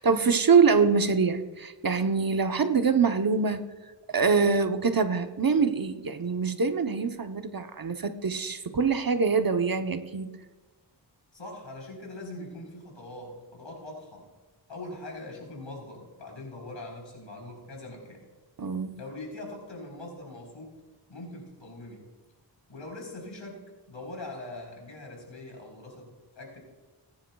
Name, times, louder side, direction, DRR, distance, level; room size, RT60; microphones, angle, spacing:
voice 1, 0.0-3.7 4.1-10.3 18.6-18.9, right 5 dB, 50° right, 7 dB, 0.9 m, -24 dB
voice 2, 11.3-14.3 14.7-18.3 18.9-20.8 21.1-22.1 22.7-26.6, left 2 dB, 70° left, -1 dB, 4.0 m, -42 dB
20.5 x 10.5 x 2.3 m, 1.3 s
wide cardioid pair, 50°, 46 cm